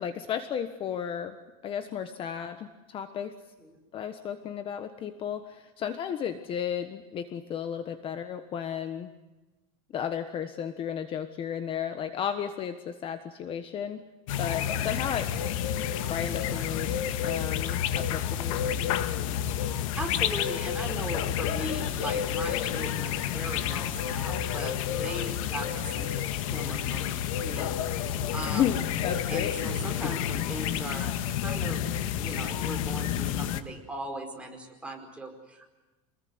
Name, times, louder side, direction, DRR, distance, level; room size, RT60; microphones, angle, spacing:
voice 1, 0.0-1.3 1.6-3.3 3.9-9.1 9.9-14.0 14.4-15.3 16.1-19.6 28.5-29.8, left 8 dB, 30° left, 9 dB, 1.4 m, -34 dB
sound 1, 14.3-33.6, left 9 dB, 90° left, 1.9 m, -30 dB
voice 2, 19.9-26.2 26.5-27.7 28.3-28.7 29.3-31.8 32.2-35.6, right 1 dB, 5° right, 1 dB, 4.9 m, -39 dB
27.5 x 21.0 x 9.7 m, 1.1 s
cardioid pair, 155°, 17 cm